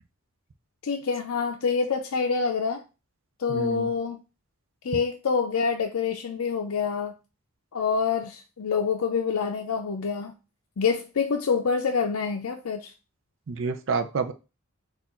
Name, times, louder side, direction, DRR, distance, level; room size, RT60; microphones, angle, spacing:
voice 1, 0.8-2.8 3.4-4.2 4.8-7.1 7.7-10.3 10.8-12.9, left 5 dB, 75° left, 3 dB, 0.5 m, -26 dB
voice 2, 3.5-3.9 13.5-14.3, right 4 dB, 60° right, 7 dB, 0.5 m, -28 dB
4.4 x 2.4 x 4.2 m, 0.30 s
head